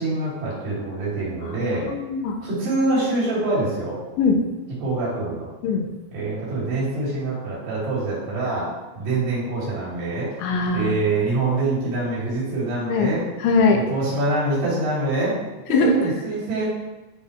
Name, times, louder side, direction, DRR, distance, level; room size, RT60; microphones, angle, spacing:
voice 1, 0.0-1.9 2.4-4.0 4.8-5.5 6.1-8.7 8.9-10.3 10.7-13.2 13.7-15.4 15.7-16.7, right 2 dB, 65° right, -8 dB, 5.1 m, -25 dB
voice 2, 1.4-2.3 4.2-4.4 5.6-5.9 10.4-10.9 12.9-13.1 13.4-13.8 15.7-15.9, left 4 dB, 85° left, 3 dB, 3.4 m, -21 dB
12.5 x 4.9 x 3.4 m, 1.1 s
omnidirectional pair, 5.2 m